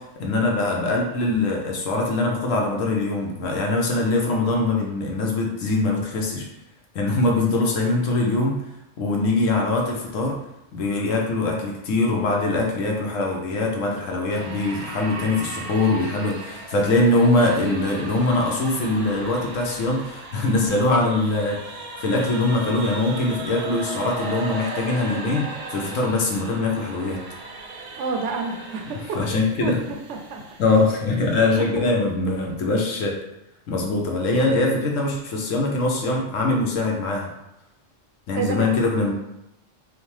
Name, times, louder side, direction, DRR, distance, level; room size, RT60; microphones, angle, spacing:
voice 1, 0.0-6.5 6.9-8.5 9.0-10.4 10.7-27.2 29.1-29.8 30.6-33.1 33.7-37.3 38.3-39.1, left 2 dB, 80° left, 0 dB, 1.1 m, -22 dB
sound 1, 14.3-31.7, right 3 dB, 90° right, 1.3 m, -37 dB
voice 2, 27.9-30.4 31.6-31.8 38.4-38.7, right 4 dB, 70° right, 4 dB, 0.9 m, -29 dB
6.2 x 2.1 x 3.2 m, 0.87 s
omnidirectional pair, 1.3 m